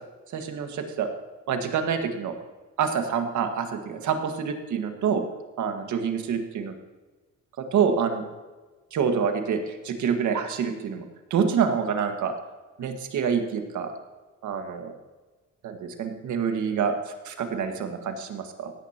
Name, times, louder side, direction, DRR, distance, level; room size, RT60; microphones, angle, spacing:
voice 1, 0.3-1.1 1.5-2.3 2.8-5.2 5.6-6.7 7.6-8.2 8.9-11.0 11.3-12.3 12.8-13.9 14.4-14.9 15.6-18.7, right 6 dB, 75° right, 5 dB, 1.7 m, -27 dB
16.5 x 9.7 x 2.9 m, 1.3 s
cardioid pair, 90°, 30 cm